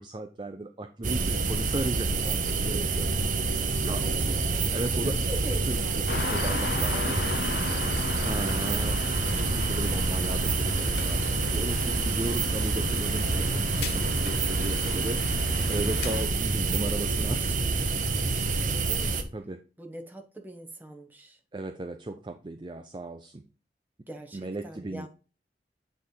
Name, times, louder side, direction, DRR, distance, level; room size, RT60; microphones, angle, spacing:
voice 1, 0.0-3.1 3.9-4.0 4.7-5.2 5.7-7.2 8.2-17.4 19.3-19.6 21.5-23.4 24.3-25.1, right 2 dB, 25° right, 0.4 m, -36 dB
sound 1, 1.0-19.2, right 3 dB, 45° right, 0.9 m, -27 dB
voice 2, 3.9-6.2 6.9-7.8 17.3-17.8 18.3-19.3 19.8-21.4 24.1-25.1, right 1 dB, 10° right, 1.0 m, -43 dB
sound 2, 6.1-16.2, left 4 dB, 65° left, 0.6 m, -35 dB
9.1 x 3.3 x 3.9 m
head